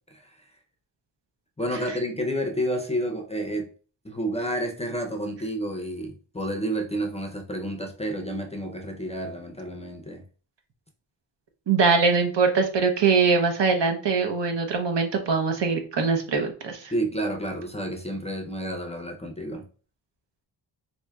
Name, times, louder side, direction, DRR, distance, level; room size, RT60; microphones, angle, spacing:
voice 1, 1.6-3.7 4.0-10.2 16.9-19.6, right 1 dB, 15° left, 3 dB, 0.5 m, -30 dB
voice 2, 11.7-16.9, right 4 dB, 70° right, 4 dB, 0.9 m, -22 dB
4.5 x 2.7 x 2.2 m, 0.39 s
wide cardioid pair, 100°, 45 cm